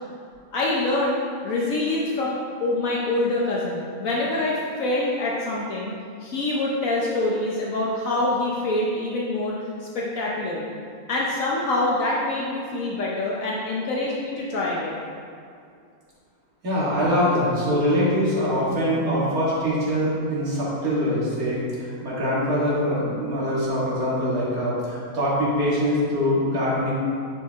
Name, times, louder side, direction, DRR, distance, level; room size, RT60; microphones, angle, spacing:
voice 1, 0.5-1.2 1.4-5.9 6.2-9.5 9.8-10.7 11.1-15.0, left 2 dB, 70° left, -4 dB, 1.2 m, -25 dB
voice 2, 16.6-26.9, equal, 80° right, -8 dB, 2.5 m, -23 dB
9.8 x 4.7 x 3.6 m, 2.3 s
omnidirectional pair, 1.5 m